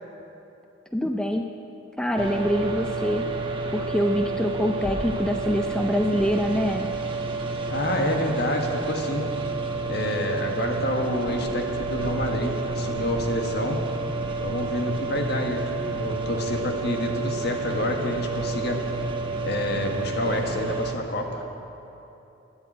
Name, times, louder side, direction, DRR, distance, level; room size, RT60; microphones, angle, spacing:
voice 1, 0.9-1.4 2.0-3.3 3.7-6.9, equal, 5° left, 3 dB, 0.5 m, -25 dB
sound 1, 2.2-20.9, right 3 dB, 25° right, 1.1 m, -30 dB
voice 2, 7.7-9.3 9.8-13.8 14.4-18.9 19.4-21.5, left 1 dB, 55° left, 2 dB, 1.5 m, -28 dB
12.0 x 10.5 x 8.9 m, 2.9 s
head